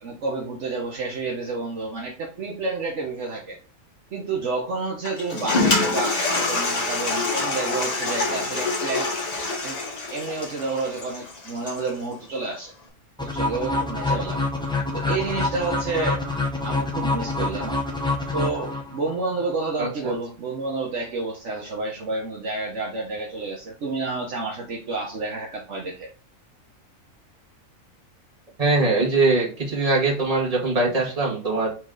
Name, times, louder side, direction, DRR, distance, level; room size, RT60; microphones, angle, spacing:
voice 1, 0.0-3.6 4.1-9.1 9.6-9.8 10.1-12.7 13.2-14.5 14.9-16.2 16.6-17.8 18.3-26.1, right 3 dB, 65° right, -1 dB, 1.2 m, -29 dB
Toilet flush, 5.0-12.0, left 3 dB, 35° left, 0.8 m, -26 dB
sound 1, 13.2-19.1, left 2 dB, 5° left, 0.5 m, -26 dB
voice 2, 19.8-20.1 28.6-31.7, right 3 dB, 25° right, -4 dB, 1.7 m, -22 dB
4.4 x 3.1 x 3.7 m, 0.36 s
omnidirectional pair, 1.4 m